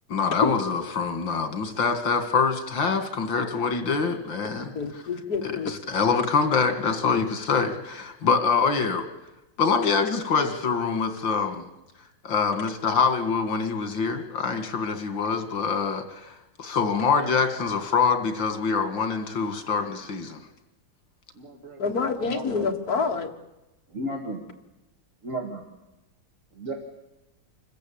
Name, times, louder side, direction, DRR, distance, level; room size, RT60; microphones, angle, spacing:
voice 1, 0.1-4.7 5.7-9.1 9.6-11.7 12.2-20.4, left 5 dB, 85° left, 7 dB, 2.7 m, -25 dB
voice 2, 4.6-5.7 21.8-23.3, left 5 dB, 55° left, 5 dB, 2.0 m, -27 dB
voice 3, 21.4-21.8 22.3-22.7 23.9-24.4 25.2-25.6 26.6-26.7, right 1 dB, 45° right, 0 dB, 2.3 m, -33 dB
25.5 x 14.5 x 8.6 m, 0.98 s
omnidirectional pair, 2.0 m